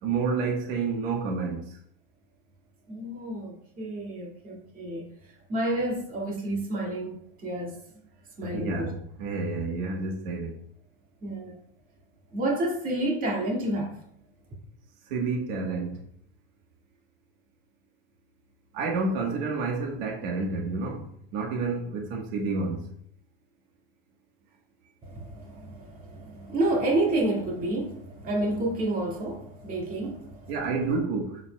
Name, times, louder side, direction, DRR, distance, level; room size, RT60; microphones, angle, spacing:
voice 1, 0.0-1.8 8.4-10.6 15.1-16.0 18.7-22.9 30.5-31.4, right 4 dB, 70° right, 0 dB, 1.4 m, -29 dB
voice 2, 2.9-5.1 5.5-7.8 8.4-9.0 11.2-11.6 12.3-14.0 25.0-30.5 30.9-31.0, right 1 dB, 30° right, -2 dB, 2.0 m, -30 dB
7.2 x 6.9 x 2.2 m, 0.68 s
supercardioid pair, 150°, 30 cm